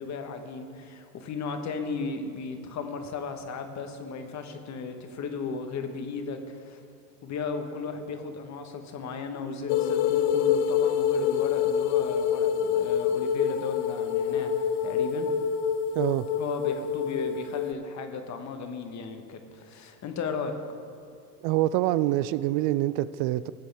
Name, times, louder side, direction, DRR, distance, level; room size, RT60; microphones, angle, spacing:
voice 1, 0.0-6.8 7.2-15.3 16.4-20.6, left 5 dB, 35° left, 1.4 m, -35 dB
sound 1, 9.7-17.7, left 8 dB, 50° left, 0.7 m, -26 dB
voice 2, 15.9-16.3 21.4-23.5, right 15 dB, 45° right, 0.4 m, -25 dB
18.5 x 7.6 x 3.5 m
hypercardioid pair, 85°, 47 cm